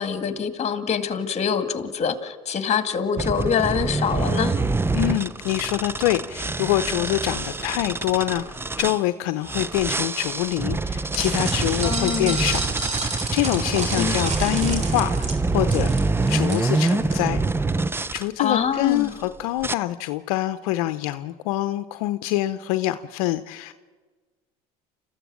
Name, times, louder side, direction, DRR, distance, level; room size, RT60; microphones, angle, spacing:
voice 1, 0.0-4.5 11.8-12.4 14.0-14.2 18.4-19.1, left 7 dB, 35° left, 9 dB, 2.1 m, -25 dB
sound 1, 3.2-9.0 9.4-18.2 18.9-19.2 19.6-19.7, right 3 dB, 10° right, 0.7 m, -25 dB
voice 2, 4.9-15.9 16.3-17.4 18.1-23.7, left 15 dB, 75° left, 11 dB, 0.7 m, -25 dB
sound 2, 11.1-17.1, right 4 dB, 40° right, 3.7 m, -31 dB
29.5 x 14.0 x 7.5 m, 1.4 s
hypercardioid pair, 80°, 18 cm